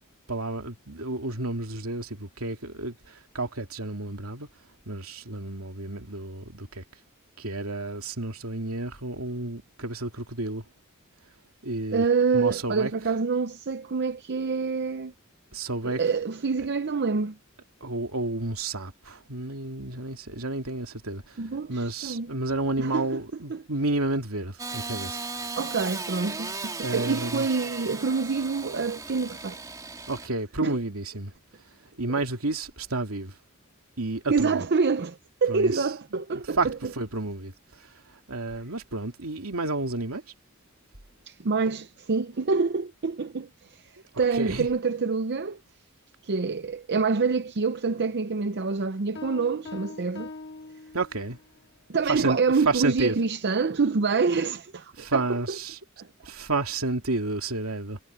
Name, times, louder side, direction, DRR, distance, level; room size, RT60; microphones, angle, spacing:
voice 1, 0.3-4.5 4.9-6.8 7.4-10.6 11.6-12.0 12.3-12.9 15.5-16.0 17.8-21.4 21.7-25.2 26.8-27.5 30.1-31.3 32.0-33.3 34.0-34.7 35.5-35.9 36.1-37.5 37.8-37.9 38.3-40.2 44.3-44.7 50.9-51.4 52.1-52.4 52.6-53.1 55.0-55.8 56.2-58.0, right 2 dB, 75° right, 2.9 m, -31 dB
voice 2, 11.9-15.1 15.8-17.4 21.4-22.3 22.8-23.1 23.5-23.6 25.5-29.5 30.6-30.8 34.3-36.8 41.3-45.6 46.2-50.3 51.9-55.4 56.0-56.1, right 4 dB, 55° right, 0.7 m, -26 dB
Engine starting / Sawing, 24.6-30.3, right 3 dB, 15° right, 2.3 m, -36 dB
sound 1, 49.2-51.5, left 3 dB, 55° left, 2.3 m, -42 dB
head